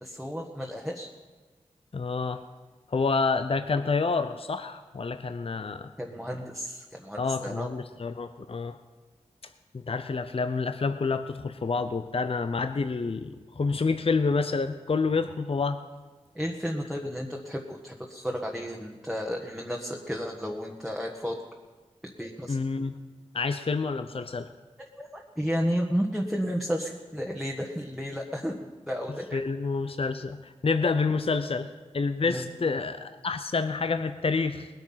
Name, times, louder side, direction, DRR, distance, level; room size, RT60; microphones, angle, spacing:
voice 1, 0.0-1.1 6.0-7.7 16.3-21.3 22.2-22.6 25.0-28.6 28.9-29.4 32.2-32.4, equal, ahead, 0 dB, 1.5 m, -32 dB
voice 2, 1.9-2.4 2.9-5.9 7.2-8.8 9.7-15.8 22.5-23.0 23.3-24.5 29.3-31.7 31.9-34.7, left 4 dB, 50° left, 9 dB, 0.7 m, -28 dB
20.0 x 9.2 x 5.7 m, 1.4 s
cardioid pair, 50°, 12 cm